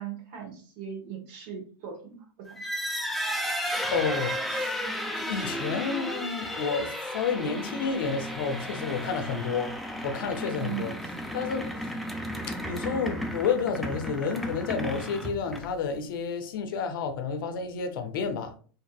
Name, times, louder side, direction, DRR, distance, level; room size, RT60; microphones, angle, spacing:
voice 1, 0.0-2.7 5.6-5.7 10.5-10.9, right 9 dB, 55° right, 0.9 m, -39 dB
sound 1, 2.5-15.9, equal, ahead, 0.3 m, -34 dB
voice 2, 3.9-4.8 5.2-9.7 10.0-10.9 11.3-11.9 12.4-18.5, left 5 dB, 70° left, 0.5 m, -30 dB
2.6 x 2.5 x 2.2 m
hypercardioid pair, 110°, 12 cm